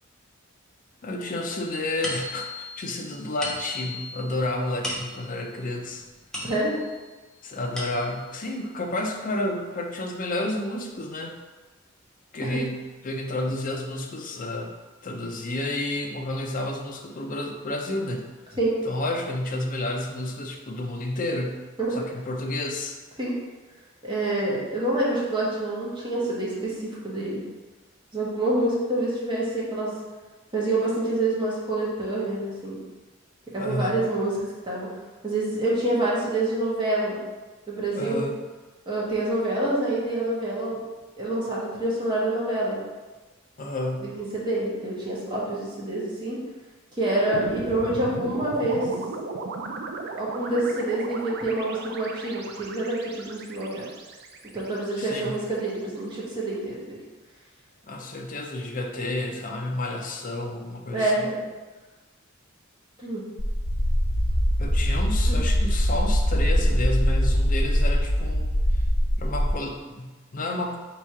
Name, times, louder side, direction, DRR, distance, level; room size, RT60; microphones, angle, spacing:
voice 1, 1.0-6.1 7.4-11.4 12.3-14.7 15.0-18.3 18.8-21.6 21.9-23.0 33.6-34.1 37.9-38.3 43.6-44.1 55.0-55.4 57.8-61.3 64.6-68.5 69.2-70.8, left 1 dB, 40° left, 3 dB, 0.5 m, -30 dB
sound 1, 2.0-7.0 7.5-8.3, left 1 dB, 5° left, 0.7 m, -37 dB
voice 2, 6.4-6.7 12.4-12.6 18.6-18.7 21.8-22.0 23.2-23.3 24.0-27.4 28.1-29.9 30.5-32.8 33.5-34.9 35.2-37.2 37.7-38.3 38.9-40.8 41.2-42.8 44.0-46.4 46.9-48.9 50.1-53.8 54.5-57.0 60.9-61.4 63.0-63.2 65.3-65.4, right 2 dB, 25° right, -6 dB, 1.2 m, -27 dB
sound 2, 47.3-55.6, right 3 dB, 55° right, 0.4 m, -36 dB
sound 3, 63.4-69.5, equal, 70° left, 1.1 m, -22 dB
3.6 x 3.0 x 4.6 m, 1.2 s
head